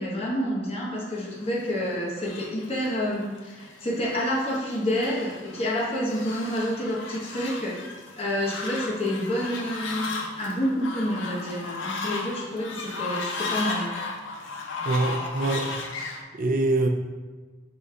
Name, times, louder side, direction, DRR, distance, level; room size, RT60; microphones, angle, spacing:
voice 1, 0.0-7.8 8.2-14.0, equal, 30° left, -4 dB, 0.9 m, -28 dB
Fowl, 1.4-16.2, left 3 dB, 85° left, 0.5 m, -35 dB
voice 2, 14.8-15.8 16.3-16.9, right 2 dB, 45° right, 4 dB, 0.3 m, -24 dB
5.1 x 2.2 x 3.7 m, 1.3 s
head